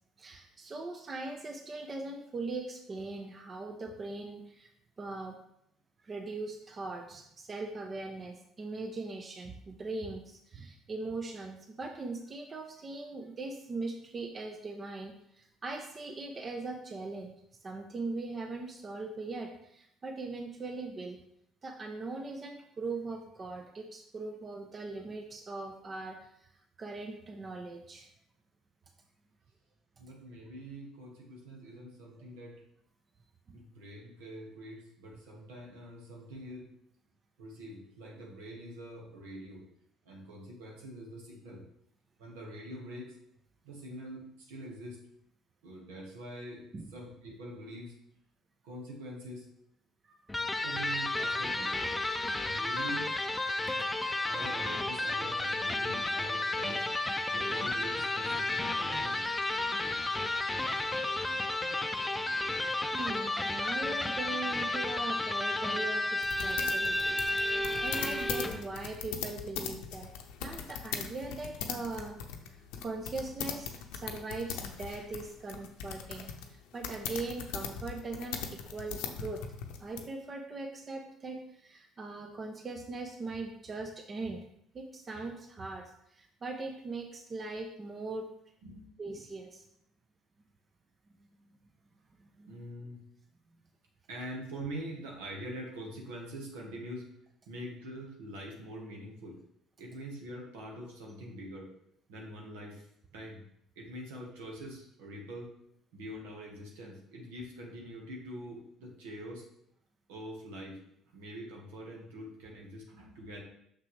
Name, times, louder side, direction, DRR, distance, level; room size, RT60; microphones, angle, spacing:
voice 1, 0.2-4.7 5.0-5.4 6.0-17.3 17.6-21.2 21.6-26.5 26.8-28.1 33.5-33.6 46.7-46.9 50.0-50.2 62.6-70.1 70.4-72.2 72.8-79.4 79.8-84.4 84.7-88.3 89.0-89.6 92.2-92.5, right 3 dB, 40° right, 4 dB, 0.8 m, -40 dB
voice 2, 30.0-32.6 33.5-36.7 37.4-39.6 40.0-41.6 42.2-43.1 43.6-45.0 45.6-46.7 46.9-47.9 48.6-49.5 50.6-51.8 52.4-53.1 54.3-56.8 57.3-59.2 88.6-88.9 92.5-93.0 94.1-97.1 97.5-99.4 99.8-101.7 102.1-102.9 103.1-103.4 103.7-105.5 105.9-109.4 110.1-110.8 111.1-113.4, right 1 dB, 80° right, -1 dB, 1.5 m, -44 dB
Electric guitar, 50.3-68.7, left 2 dB, 15° left, 0.6 m, -32 dB
sound 1, 66.2-80.0, left 8 dB, 75° left, 0.7 m, -40 dB
6.1 x 5.8 x 3.3 m, 0.73 s
hypercardioid pair, 60°, 0 cm